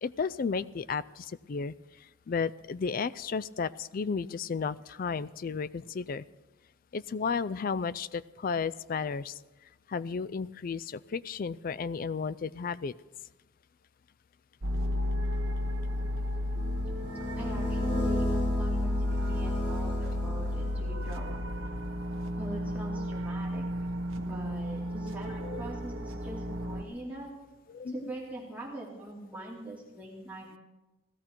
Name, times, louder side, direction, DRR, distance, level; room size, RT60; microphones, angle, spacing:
voice 1, 0.0-1.7 2.3-6.3 6.9-9.4 9.9-12.9 25.4-25.6 27.7-27.9, left 5 dB, 45° left, 16 dB, 0.3 m, -33 dB
sound 1, 14.6-26.8, left 1 dB, 80° right, 1.2 m, -32 dB
sound 2, 16.5-21.2, left 1 dB, 70° left, 6.5 m, -35 dB
voice 2, 17.4-21.5 22.4-23.6 24.2-27.3 27.9-30.6, right 1 dB, 10° right, -4 dB, 2.8 m, -42 dB
17.0 x 13.0 x 4.5 m, 1.1 s
head